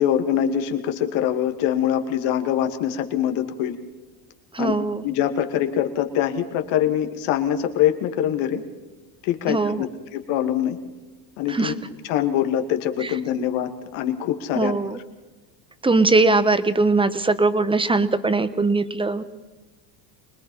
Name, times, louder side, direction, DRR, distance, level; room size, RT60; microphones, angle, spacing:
voice 1, 0.0-3.7 4.6-4.7 5.0-8.6 9.2-10.8 11.4-11.7 12.0-14.7, left 10 dB, 70° left, 6 dB, 2.5 m, -24 dB
voice 2, 4.5-5.0 9.5-9.9 11.5-11.7 13.0-13.1 14.5-15.0 15.8-19.2, right 3 dB, 10° right, 13 dB, 1.3 m, -20 dB
25.0 x 20.5 x 5.6 m, 1.2 s
supercardioid pair, 100°, 49 cm